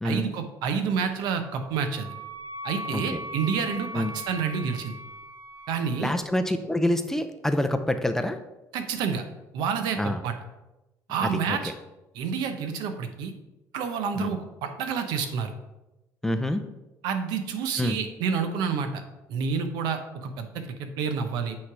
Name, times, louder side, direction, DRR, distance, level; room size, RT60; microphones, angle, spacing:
voice 1, 0.0-2.1 2.6-4.9 5.7-6.1 8.7-9.2 9.5-10.3 11.1-11.7 12.1-13.3 13.7-15.5 17.0-19.0 19.3-21.6, right 6 dB, 85° right, 7 dB, 0.8 m, -29 dB
Wind instrument woodwind instrument, 1.4-6.1, right 1 dB, 40° right, 0.9 m, -39 dB
voice 2, 2.9-3.2 3.9-4.2 6.0-8.4 10.0-10.2 11.2-11.6 14.2-14.3 16.2-16.7 17.8-18.0, left 1 dB, 5° left, 7 dB, 0.4 m, -27 dB
8.6 x 3.2 x 4.7 m, 0.99 s
cardioid pair, 130°, 7 cm